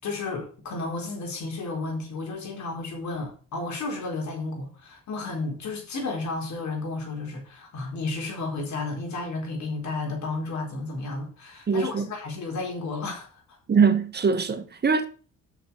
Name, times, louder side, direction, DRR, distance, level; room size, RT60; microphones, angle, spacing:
voice 1, 0.0-13.6, left 3 dB, 65° left, 4.2 m, -32 dB
voice 2, 11.7-12.1 13.7-15.0, right 5 dB, 35° right, 1.4 m, -22 dB
6.5 x 6.3 x 7.0 m
cardioid pair, 90°, 30 cm